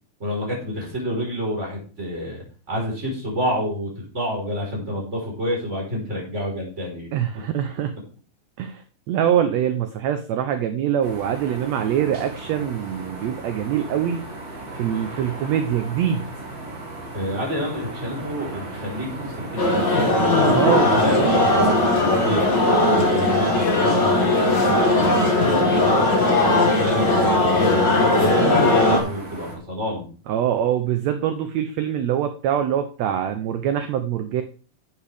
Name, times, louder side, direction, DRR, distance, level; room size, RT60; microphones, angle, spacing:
voice 1, 0.2-7.1 17.1-22.5 22.9-26.0 26.4-30.1, equal, 20° right, -2 dB, 4.5 m, -29 dB
voice 2, 7.1-7.9 8.6-8.8 9.1-14.2 14.7-16.2 20.5-21.3 30.3-34.4, right 10 dB, 80° right, 8 dB, 1.5 m, -24 dB
sound 1, 11.0-29.6, right 2 dB, 50° right, 3.6 m, -36 dB
sound 2, 19.6-29.0, left 2 dB, 35° left, 2.3 m, -18 dB
11.5 x 8.3 x 3.5 m, 0.38 s
omnidirectional pair, 3.9 m